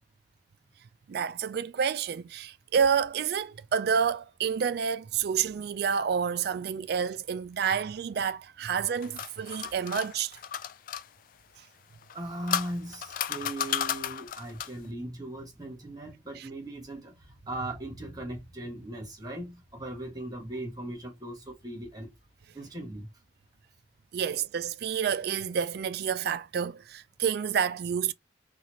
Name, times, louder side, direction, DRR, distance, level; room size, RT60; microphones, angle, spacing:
voice 1, 1.1-10.3 16.4-16.5 24.1-28.1, right 7 dB, 60° right, 0.3 m, -29 dB
sound 1, 8.7-11.1 12.0-14.9, left 10 dB, 50° left, 0.3 m, -34 dB
voice 2, 12.1-22.1 22.5-23.1, right 1 dB, 20° right, 1.4 m, -38 dB
4.1 x 2.4 x 3.0 m
head